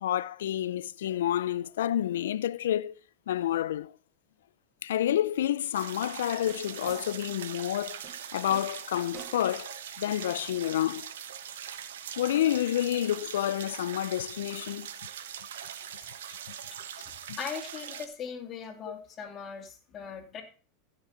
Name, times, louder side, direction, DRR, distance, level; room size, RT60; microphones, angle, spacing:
voice 1, 0.0-2.9 3.3-3.9 4.8-8.0 8.3-11.1 12.2-14.9 17.3-17.4, left 11 dB, 80° left, 0.5 m, -29 dB
sound 1, 5.7-18.1, right 9 dB, 80° right, 1.1 m, -42 dB
sound 2, 6.2-7.4 8.0-9.6, right 5 dB, 40° right, 5.5 m, -49 dB
voice 2, 17.0-20.4, left 7 dB, 35° left, 2.7 m, -40 dB
15.5 x 6.4 x 4.0 m
hypercardioid pair, 95°, 0 cm